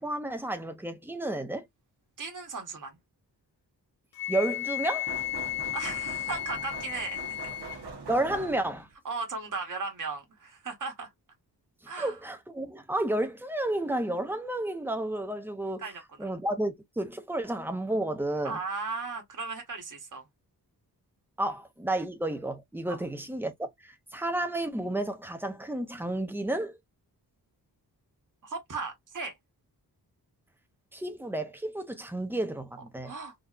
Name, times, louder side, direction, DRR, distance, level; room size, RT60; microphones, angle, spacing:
voice 1, 0.0-1.7 4.3-5.1 8.1-8.9 12.0-15.8 16.2-18.6 21.4-26.8 30.9-33.1, right 1 dB, 5° right, 0.6 m, -31 dB
voice 2, 2.2-3.0 5.7-7.5 9.0-11.1 11.9-12.2 15.8-16.0 18.4-20.3 22.9-23.0 28.4-29.3 33.0-33.3, right 4 dB, 50° right, 1.3 m, -36 dB
Wind instrument woodwind instrument, 4.2-7.8, left 15 dB, 65° left, 0.6 m, -34 dB
sound 1, 5.1-8.9, right 4 dB, 75° right, 1.0 m, -42 dB
3.8 x 2.8 x 2.4 m
wide cardioid pair, 175°, 40 cm